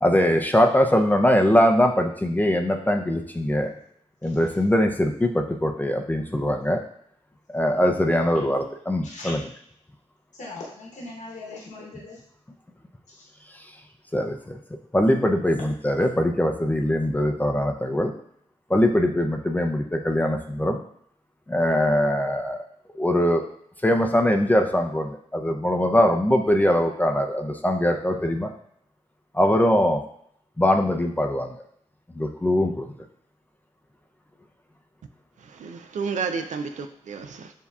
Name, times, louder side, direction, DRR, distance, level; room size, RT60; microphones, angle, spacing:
voice 1, 0.0-3.7 4.2-6.8 7.5-9.5 13.5-13.7 14.1-14.6 14.9-18.1 18.7-20.8 21.5-22.6 22.9-23.4 23.8-28.5 29.3-30.0 30.6-31.6 32.2-32.9, left 1 dB, 15° left, 3 dB, 0.5 m, -22 dB
voice 2, 4.2-4.6 9.0-9.3 10.4-12.2 13.2-13.3, left 2 dB, 80° left, -3 dB, 1.0 m, -40 dB
voice 3, 35.5-37.5, right 5 dB, 75° right, 7 dB, 0.4 m, -31 dB
6.9 x 2.7 x 2.3 m, 0.67 s
cardioid pair, 80°, 12 cm